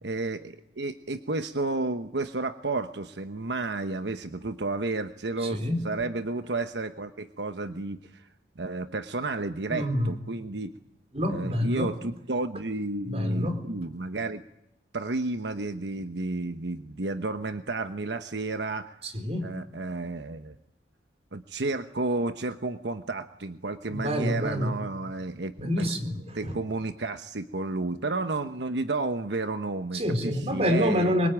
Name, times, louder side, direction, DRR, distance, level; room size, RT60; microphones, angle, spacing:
voice 1, 0.0-8.3 8.6-10.7 11.3-14.4 14.9-19.0 19.4-20.5 21.3-25.9 26.3-31.1, right 2 dB, 80° right, 9 dB, 1.1 m, -32 dB
voice 2, 5.4-5.8 9.7-10.1 11.1-11.9 13.1-13.6 19.0-19.5 23.9-24.8 25.6-26.6 29.9-31.3, equal, 35° right, 7 dB, 4.0 m, -27 dB
26.0 x 23.0 x 9.1 m, 0.82 s
head